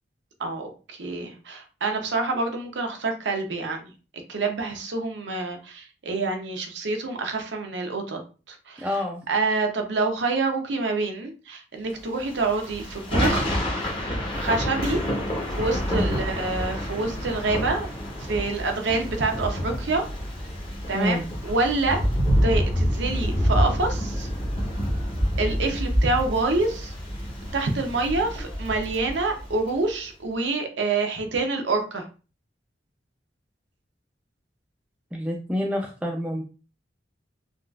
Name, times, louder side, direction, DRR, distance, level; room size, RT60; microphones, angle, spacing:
voice 1, 0.4-3.8 4.3-8.2 8.7-8.9 9.3-13.6 14.4-15.0 15.6-17.9 18.3-20.0 20.9-22.0 22.4-24.3 25.4-26.9 27.5-32.0, right 3 dB, 80° right, 4 dB, 0.6 m, -27 dB
voice 2, 8.8-9.2 15.9-16.1 20.9-21.3 35.1-36.4, left 1 dB, 5° right, 0 dB, 0.3 m, -27 dB
Thunder / Rain, 12.2-29.7, equal, 30° left, 0.8 m, -27 dB
3.7 x 2.4 x 2.3 m, 0.34 s
head